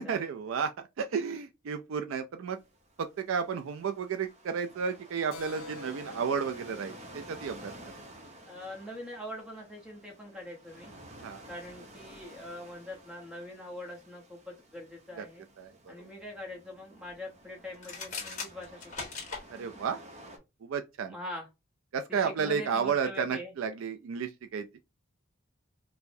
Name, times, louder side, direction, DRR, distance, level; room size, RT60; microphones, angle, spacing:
voice 1, 0.0-2.6 3.0-7.7 11.2-11.4 15.2-15.3 15.6-15.9 19.5-20.0 20.6-21.1 21.9-24.7, right 6 dB, 70° right, 0.4 m, -32 dB
sound 1, 2.5-20.4, right 1 dB, 35° right, 0.7 m, -52 dB
Keyboard (musical), 5.3-9.4, left 2 dB, 85° left, 0.6 m, -49 dB
voice 2, 8.5-10.9 11.5-15.5 15.9-19.1 21.1-21.5 22.1-23.5, left 1 dB, 5° right, 0.8 m, -43 dB
sound 2, 17.7-19.4, left 4 dB, 35° left, 1.3 m, -39 dB
4.5 x 2.0 x 2.6 m
head